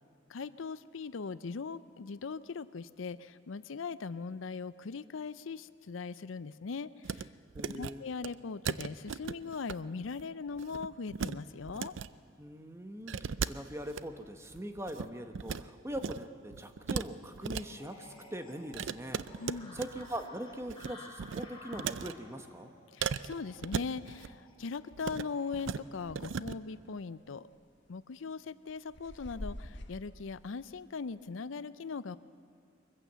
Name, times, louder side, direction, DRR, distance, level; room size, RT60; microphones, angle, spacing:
voice 1, 0.3-7.3 7.8-12.0 19.4-19.8 22.9-27.5 27.9-32.2, left 4 dB, 80° left, 15 dB, 0.5 m, -40 dB
sound 1, 7.0-7.2 7.5-7.9 8.2-8.3 8.7-9.8 10.0-10.2 10.6-11.4 11.6-12.1 13.1-14.0 14.5-15.6 15.9-16.3 16.5-17.6 18.7-20.2 20.5-20.9 21.2-22.1 23.0-24.3 24.9-25.3 25.5-25.8 26.1-26.5, right 6 dB, 70° right, 0.5 m, -37 dB
voice 2, 7.5-8.0 12.4-22.7, equal, 15° right, 7 dB, 1.1 m, -42 dB
sound 2, 17.5-25.7, left 2 dB, 25° left, 4.2 m, -54 dB
sound 3, 25.8-26.4 26.7-26.8 27.5-27.9 28.5-30.1, left 1 dB, 60° left, 1.2 m, -45 dB
23.5 x 15.0 x 8.1 m, 2.4 s
head